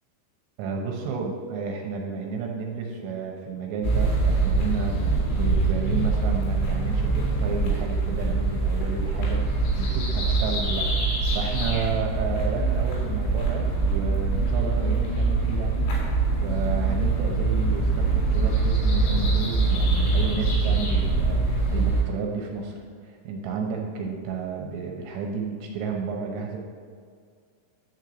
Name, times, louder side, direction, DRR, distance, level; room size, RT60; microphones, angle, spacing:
voice 1, 0.6-10.9 11.3-15.9 16.4-22.8 23.0-26.6, right 5 dB, 75° right, 0 dB, 2.9 m, -32 dB
sound 1, 3.8-22.0, right 3 dB, 85° left, 4.8 m, -24 dB
11.5 x 4.6 x 7.0 m, 2.1 s
omnidirectional pair, 5.6 m